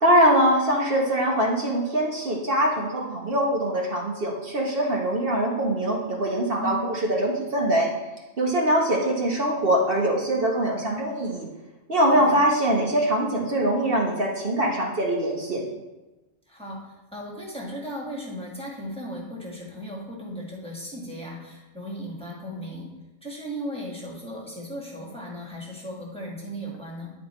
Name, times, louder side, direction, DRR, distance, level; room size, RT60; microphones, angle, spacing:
voice 1, 0.0-7.9 8.4-11.5 11.9-15.7, right 1 dB, 55° right, -2 dB, 1.2 m, -23 dB
voice 2, 16.5-22.9 23.2-27.1, equal, 5° left, -4 dB, 1.5 m, -36 dB
9.7 x 4.3 x 4.3 m, 1.1 s
omnidirectional pair, 1.2 m